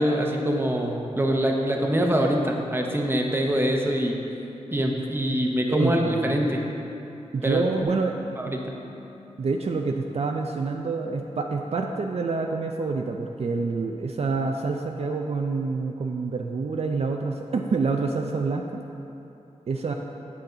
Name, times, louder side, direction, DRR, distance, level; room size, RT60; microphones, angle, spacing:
voice 1, 0.0-4.2 4.7-6.7 7.4-7.6 8.4-8.6, equal, 20° right, 1 dB, 0.8 m, -24 dB
voice 2, 5.7-6.4 7.3-8.2 9.4-18.8 19.7-19.9, right 4 dB, 60° right, 2 dB, 0.4 m, -27 dB
Bass guitar, 7.8-14.1, left 1 dB, 10° left, 0.9 m, -50 dB
9.1 x 7.1 x 3.9 m, 2.9 s
wide cardioid pair, 115°, 12 cm